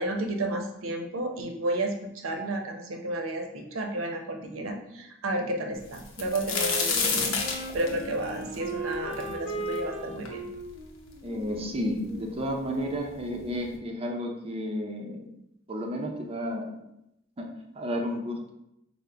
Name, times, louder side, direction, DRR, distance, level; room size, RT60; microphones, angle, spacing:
voice 1, 0.0-7.4 7.7-10.5, right 1 dB, 80° right, 3 dB, 0.6 m, -32 dB
sound 1, 5.9-9.8 10.3-10.4 11.1-11.2 11.5-12.1 13.0-13.1 13.5-13.7, left 4 dB, 85° left, 0.7 m, -29 dB
Wind instrument woodwind instrument, 6.5-13.1, right 1 dB, 60° left, 0.8 m, -38 dB
voice 2, 11.2-15.3 15.7-16.8 17.4-17.5 17.8-18.5, equal, 30° right, 2 dB, 0.5 m, -32 dB
4.8 x 2.0 x 3.3 m, 0.82 s
head